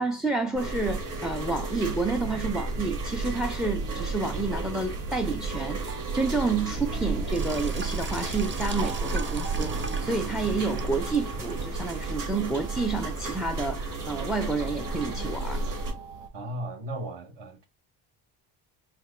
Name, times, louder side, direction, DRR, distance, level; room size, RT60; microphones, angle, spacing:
voice 1, 0.0-15.6, right 3 dB, ahead, 0.3 m, -30 dB
sound 1, 0.5-15.9, right 3 dB, 45° right, 2.0 m, -32 dB
sound 2, 1.8-16.3, right 5 dB, 90° right, 0.8 m, -41 dB
Sink (filling or washing), 7.2-15.0, right 3 dB, 25° right, 0.8 m, -42 dB
voice 2, 16.3-17.7, right 1 dB, 70° right, 1.5 m, -36 dB
4.5 x 2.4 x 3.8 m
supercardioid pair, 80°, 45 cm